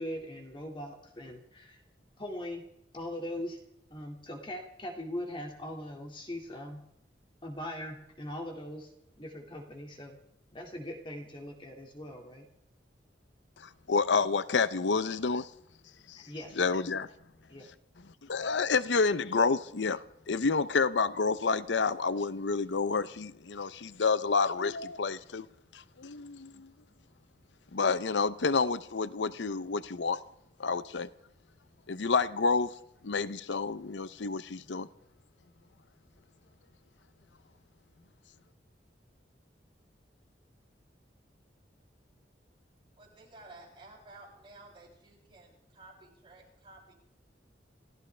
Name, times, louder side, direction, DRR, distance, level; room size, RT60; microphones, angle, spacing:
voice 1, 0.0-1.8 2.2-2.7 2.9-3.6 3.9-6.8 7.4-8.9 9.2-10.2 10.5-12.5 16.2-16.6 17.5-17.7, left 1 dB, 30° left, 2.2 m, -40 dB
voice 2, 13.6-15.5 16.1-16.2 16.6-17.1 18.3-25.5 25.7-26.7 27.7-30.2 30.6-31.1 31.9-32.7 33.0-34.9, left 4 dB, 90° left, 0.7 m, -29 dB
voice 3, 43.0-46.9, right 2 dB, 30° right, 7.2 m, -53 dB
28.5 x 15.0 x 3.3 m
head